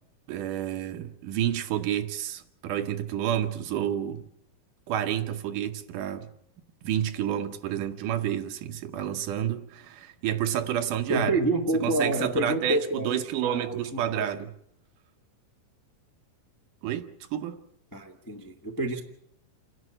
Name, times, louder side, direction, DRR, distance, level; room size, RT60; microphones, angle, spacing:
voice 1, 0.3-4.2 4.9-6.3 6.8-11.3 11.7-14.5 16.8-17.6, right 10 dB, 75° right, 2.5 m, -30 dB
voice 2, 11.1-14.2 17.9-19.0, right 2 dB, 15° left, 0.7 m, -28 dB
28.5 x 11.0 x 8.8 m
omnidirectional pair, 3.9 m